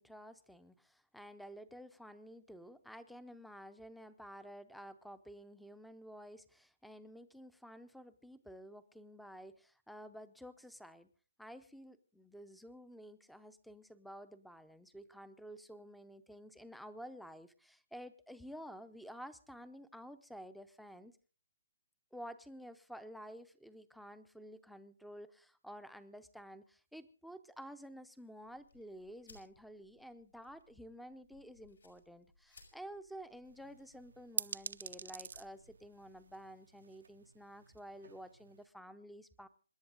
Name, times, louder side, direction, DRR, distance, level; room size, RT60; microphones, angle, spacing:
voice 1, 0.0-11.1 11.4-21.1 22.1-39.5, equal, ahead, 14 dB, 0.7 m, -52 dB
sound 1, 28.5-36.4, left 3 dB, 85° left, 7.1 m, -66 dB
sound 2, 33.4-38.7, right 5 dB, 70° right, 0.7 m, -46 dB
27.0 x 11.0 x 3.9 m, 0.40 s
hypercardioid pair, 165°, 0 cm